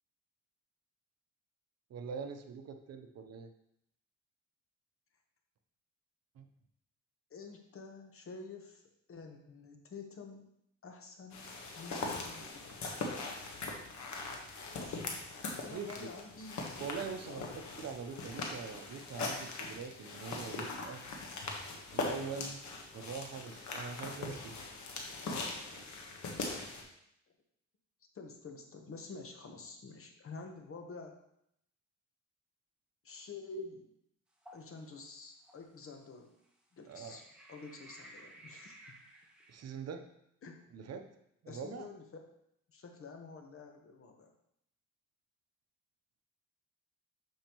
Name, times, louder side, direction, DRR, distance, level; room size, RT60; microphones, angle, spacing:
voice 1, 1.9-3.5 6.4-6.5 15.7-16.1 16.8-21.0 21.9-22.6 22.9-24.6 36.9-37.2 39.5-40.0 40.7-41.1 41.4-41.9, right 6 dB, 55° right, 7 dB, 0.8 m, -43 dB
voice 2, 7.3-8.8 9.1-10.5 10.8-11.5 11.8-13.5 14.7-16.7 17.1-17.9 28.1-31.2 33.0-33.9 34.5-36.3 36.7-39.0 40.4-40.6 41.5-42.0 42.7-44.3, left 4 dB, 45° left, 4 dB, 1.1 m, -49 dB
sound 1, 11.3-26.8, left 3 dB, 70° left, 1.3 m, -41 dB
sound 2, 34.4-34.7 35.4-35.6 36.8-39.5, right 1 dB, 5° right, 1.4 m, -55 dB
7.1 x 5.4 x 3.0 m, 0.75 s
cardioid pair, 90°, 30 cm